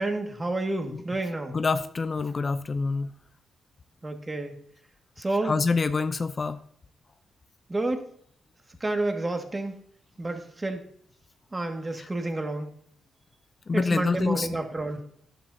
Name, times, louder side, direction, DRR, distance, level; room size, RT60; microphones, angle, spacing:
voice 1, 0.0-1.6 4.0-4.6 5.2-5.6 7.7-8.0 8.8-9.8 10.2-10.8 11.5-12.7 13.7-15.0, right 2 dB, 25° right, 4 dB, 1.9 m, -29 dB
voice 2, 1.5-3.1 5.5-6.6 12.0-12.1 13.7-14.5, left 4 dB, 40° left, 11 dB, 0.6 m, -26 dB
12.5 x 10.0 x 2.8 m, 0.63 s
cardioid pair, 65°, 0 cm